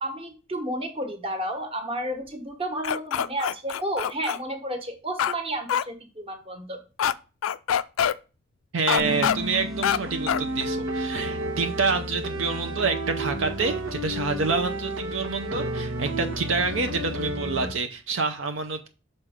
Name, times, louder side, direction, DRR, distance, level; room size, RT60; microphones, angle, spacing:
voice 1, 0.0-6.8, right 1 dB, 30° right, 1.3 m, -31 dB
sound 1, 2.8-4.4 5.2-5.4 5.7-5.8 7.0-7.1 7.4-8.1 8.9-9.4 9.8-10.0 10.3-10.4, left 9 dB, 90° left, 0.4 m, -24 dB
voice 2, 8.7-18.9, right 4 dB, 70° right, 0.6 m, -27 dB
sound 2, 9.0-17.7, right 1 dB, 85° right, 1.2 m, -31 dB
6.3 x 4.3 x 5.0 m
head